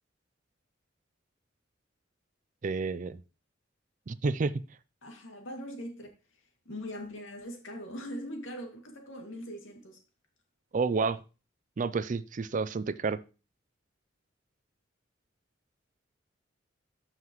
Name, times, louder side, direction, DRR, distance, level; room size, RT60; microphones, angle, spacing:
voice 1, 2.6-3.2 4.1-4.6 10.7-11.2 11.8-13.2, right 4 dB, 40° right, 0.4 m, -30 dB
voice 2, 5.0-6.1 6.7-10.0, equal, 85° left, 2.3 m, -41 dB
13.5 x 5.7 x 3.1 m
head